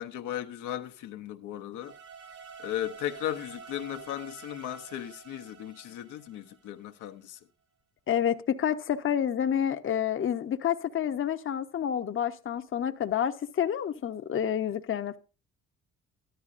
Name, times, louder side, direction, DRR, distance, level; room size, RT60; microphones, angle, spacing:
voice 1, 0.0-2.0 2.6-7.4, left 12 dB, 85° left, 0.8 m, -36 dB
sound 1, 1.7-7.0, right 6 dB, 65° right, 3.1 m, -48 dB
voice 2, 8.1-15.2, left 9 dB, 45° left, 0.7 m, -29 dB
13.5 x 11.0 x 2.5 m
cardioid pair, 90°, 30 cm